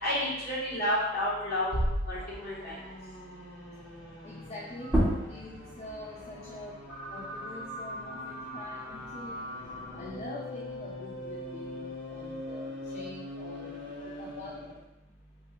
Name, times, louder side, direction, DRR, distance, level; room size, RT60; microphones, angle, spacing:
voice 1, 0.0-1.8 2.1-2.8, left 1 dB, 50° left, -8 dB, 1.3 m, -30 dB
sound 1, 1.7-3.7, equal, 50° right, 0.6 m, -34 dB
sound 2, 2.1-14.8, left 1 dB, 80° left, 1.4 m, -42 dB
voice 2, 4.2-6.8 7.1-9.6 9.9-11.8 12.1-14.6, left 2 dB, 35° left, -3 dB, 0.3 m, -45 dB
sound 3, 4.8-10.0 10.4-12.2, equal, 10° right, 0.6 m, -35 dB
3.2 x 2.2 x 2.9 m, 0.92 s
head